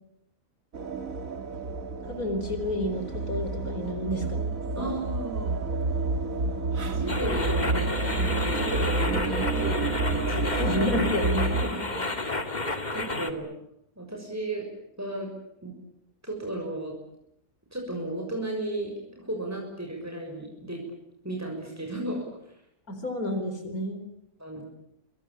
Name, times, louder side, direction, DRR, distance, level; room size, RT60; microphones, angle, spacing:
sound 1, 0.7-11.7, right 3 dB, 65° right, 2.6 m, -29 dB
voice 1, 2.1-4.9 10.6-11.5 22.9-24.0, left 1 dB, 75° left, 7 dB, 5.0 m, -30 dB
voice 2, 4.8-5.7 6.8-10.7 11.6-12.0 12.9-13.5 14.0-14.7 15.0-15.3 15.6-15.7 16.2-16.9 17.7-20.8 21.2-22.5 24.4-24.6, right 1 dB, 10° right, 1 dB, 6.6 m, -34 dB
sound 2, 7.1-13.3, left 2 dB, 30° left, 2.3 m, -31 dB
28.5 x 23.0 x 8.7 m, 0.78 s
omnidirectional pair, 1.5 m